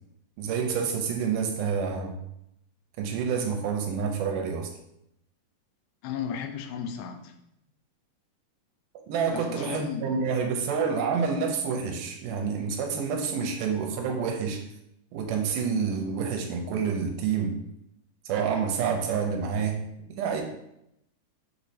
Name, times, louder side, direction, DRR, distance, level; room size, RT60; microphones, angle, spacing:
voice 1, 0.4-2.2 3.0-4.7 9.1-14.6 15.1-17.6 18.3-20.4, right 6 dB, 80° right, 3 dB, 2.1 m, -28 dB
voice 2, 6.0-7.4 9.3-10.2, left 7 dB, 85° left, 6 dB, 2.2 m, -34 dB
6.4 x 3.0 x 2.7 m, 0.80 s
omnidirectional pair, 3.8 m